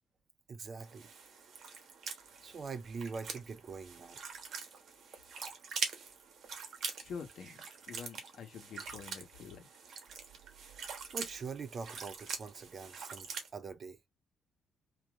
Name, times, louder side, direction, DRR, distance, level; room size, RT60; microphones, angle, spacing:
voice 1, 0.5-1.1 2.4-4.2 11.1-14.0, right 5 dB, 35° right, 0.5 m, -43 dB
sound 1, 0.8-13.5, right 5 dB, 55° right, 1.1 m, -44 dB
voice 2, 7.0-7.6 7.9-9.7, left 6 dB, 55° left, 1.2 m, -46 dB
3.7 x 2.8 x 3.1 m
cardioid pair, 170°, 0 cm